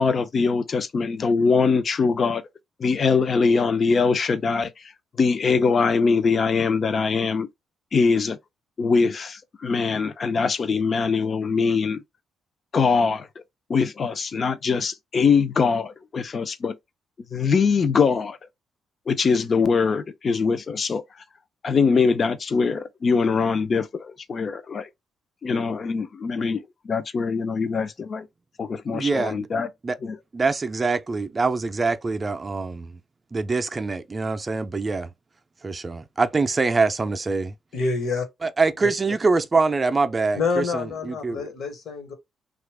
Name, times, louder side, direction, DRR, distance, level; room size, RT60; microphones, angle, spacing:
voice 1, 0.0-2.4 2.8-4.8 5.2-7.5 7.9-8.4 8.8-12.0 12.7-13.3 13.7-16.7 17.3-18.4 19.1-21.0 21.6-24.9 25.4-28.3 28.6-29.7 30.0-30.2, left 5 dB, 45° left, 0.5 m, -22 dB
voice 2, 28.9-29.5 29.8-30.0 30.3-33.0 33.3-35.1 35.6-37.5 38.6-41.5, right 4 dB, 30° right, 0.5 m, -24 dB
voice 3, 37.7-38.2 40.3-42.1, left 4 dB, 70° left, 1.2 m, -27 dB
2.8 x 2.4 x 3.4 m
cardioid pair, 90°, 0 cm